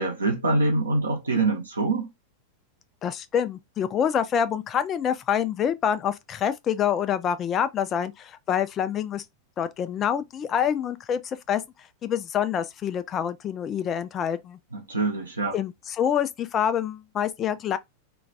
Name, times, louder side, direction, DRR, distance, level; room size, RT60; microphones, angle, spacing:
voice 1, 0.0-2.1 14.7-15.5, right 3 dB, 75° right, 0.6 m, -25 dB
voice 2, 3.0-9.2 9.6-11.6 12.0-14.6 15.5-17.8, left 8 dB, 30° left, 0.3 m, -26 dB
2.2 x 2.2 x 2.6 m
figure-of-eight pair, 90°, 0 cm